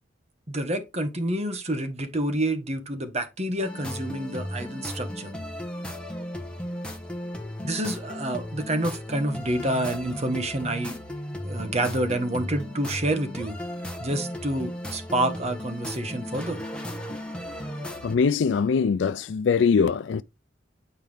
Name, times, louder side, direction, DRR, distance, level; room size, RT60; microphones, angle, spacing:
voice 1, 0.5-5.3 7.6-11.0 11.4-13.6 14.0-16.6, right 1 dB, 35° right, 1.3 m, -28 dB
sound 1, 3.6-18.2, left 1 dB, 5° left, 1.2 m, -35 dB
voice 2, 18.0-20.2, left 5 dB, 75° left, 0.4 m, -22 dB
9.1 x 4.5 x 3.5 m
head